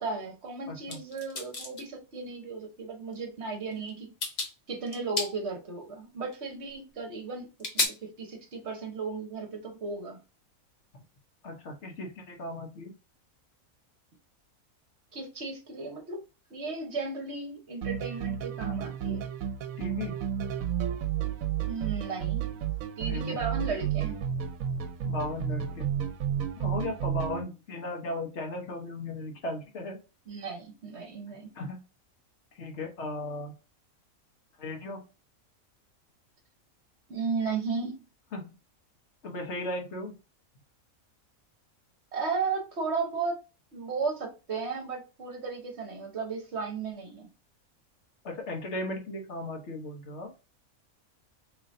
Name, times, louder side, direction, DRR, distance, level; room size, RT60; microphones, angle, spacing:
voice 1, 0.0-4.1 4.7-7.9 8.2-10.2 15.1-16.2 16.5-19.3 21.7-22.4 23.0-24.2 30.3-31.5 37.1-38.0 42.1-43.3 43.7-47.3, right 4 dB, 55° right, 1.2 m, -35 dB
voice 2, 0.7-1.0 11.4-12.9 19.8-20.2 23.1-23.3 25.0-25.9 26.6-30.0 31.5-31.8 32.6-33.5 34.6-35.0 38.3-38.5 39.2-40.1 48.2-50.3, left 2 dB, 60° left, 1.2 m, -36 dB
sound 1, 0.9-1.9 3.1-3.2 3.7-3.9 4.2-4.5 4.9-5.3 6.3-6.4 7.6-7.9, left 3 dB, 35° left, 0.8 m, -31 dB
sound 2, 17.8-27.4, right 9 dB, 80° right, 1.0 m, -32 dB
3.8 x 3.1 x 2.5 m
omnidirectional pair, 1.4 m